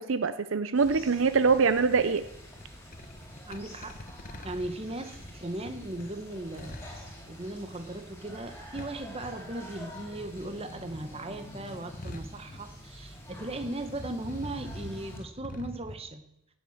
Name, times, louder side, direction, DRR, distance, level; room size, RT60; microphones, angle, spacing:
voice 1, 0.0-2.2, right 5 dB, 70° right, 12 dB, 0.7 m, -24 dB
sound 1, 0.7-15.2, equal, 10° left, 3.9 m, -47 dB
sound 2, 0.9-10.1 10.4-13.3 13.5-16.0, left 1 dB, 40° left, 1.3 m, -46 dB
voice 2, 3.5-6.9 7.2-16.2, right 1 dB, 30° right, 8 dB, 1.2 m, -38 dB
17.0 x 7.7 x 7.2 m, 0.80 s
head